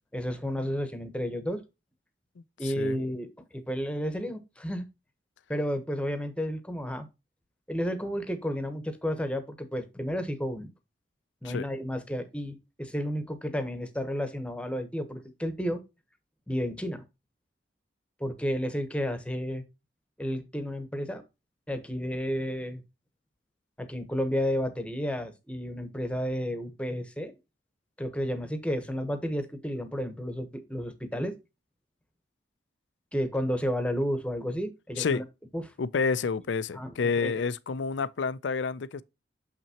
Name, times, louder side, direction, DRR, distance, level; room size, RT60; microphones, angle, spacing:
voice 1, 0.1-1.6 2.6-4.8 5.5-7.1 7.7-10.7 11.4-15.8 16.5-17.0 18.2-19.6 20.2-21.2 21.7-22.8 23.8-27.3 28.0-31.3 33.1-35.2 35.5-35.7 36.7-36.9 37.2-37.3, equal, 5° left, 1.0 m, -32 dB
voice 2, 2.6-3.0 11.4-11.7 35.0-35.2 35.8-39.0, left 5 dB, 90° left, 0.5 m, -29 dB
6.7 x 5.9 x 2.8 m
head